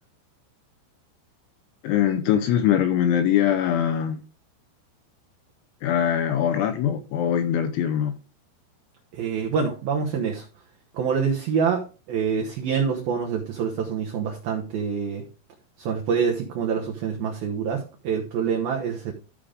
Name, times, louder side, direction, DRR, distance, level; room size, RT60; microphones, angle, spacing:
voice 1, 1.8-4.2 5.8-8.1, left 9 dB, 85° left, 2.8 m, -22 dB
voice 2, 9.1-10.5 10.9-15.2 15.8-19.1, right 6 dB, 85° right, 2.1 m, -26 dB
14.5 x 5.1 x 3.7 m
omnidirectional pair, 5.9 m